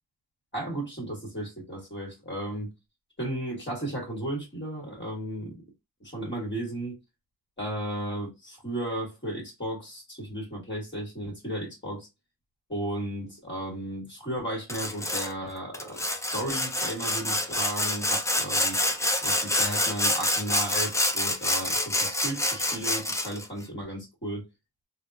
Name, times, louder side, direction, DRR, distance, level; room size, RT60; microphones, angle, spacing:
voice 1, 0.5-2.7 3.2-5.6 6.0-7.0 7.6-12.1 12.7-18.8 19.1-24.5, right 1 dB, 25° left, 1.4 m, -34 dB
Sawing, 14.7-15.3 15.7-23.5, left 1 dB, 10° left, 0.3 m, -27 dB
3.4 x 2.2 x 2.5 m
wide cardioid pair, 125°, 42 cm